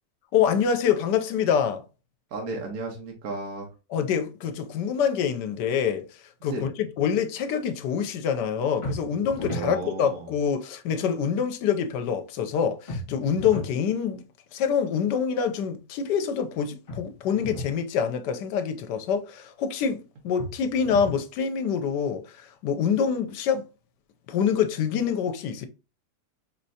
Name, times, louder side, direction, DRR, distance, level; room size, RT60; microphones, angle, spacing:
voice 1, 0.3-1.8 3.9-6.7 7.0-14.2 14.5-23.6 24.3-25.7, left 7 dB, 80° left, 1.3 m, -26 dB
voice 2, 2.3-3.7 6.5-6.6 9.5-10.3, right 3 dB, 65° right, 1.6 m, -33 dB
sound 1, 8.8-9.7 12.9-13.8 16.9-17.8 20.4-21.3, equal, 35° left, 1.8 m, -35 dB
5.0 x 3.2 x 2.7 m
omnidirectional pair, 1.8 m